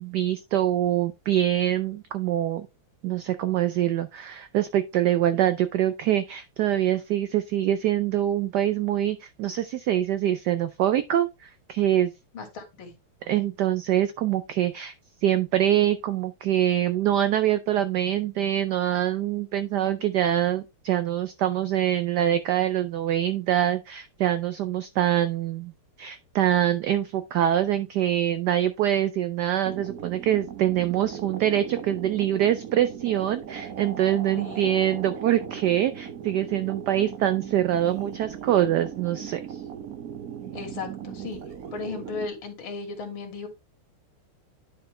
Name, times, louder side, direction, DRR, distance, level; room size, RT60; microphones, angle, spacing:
voice 1, 0.0-2.7 3.0-12.1 13.3-14.9 15.2-25.7 26.0-39.6, right 11 dB, 90° right, 0.9 m, -24 dB
voice 2, 12.3-12.9 34.4-34.7 40.5-41.4 41.7-43.5, left 4 dB, 70° left, 2.6 m, -36 dB
sound 1, 29.6-42.3, right 8 dB, 60° right, 0.9 m, -38 dB
10.5 x 4.5 x 3.2 m
omnidirectional pair, 2.4 m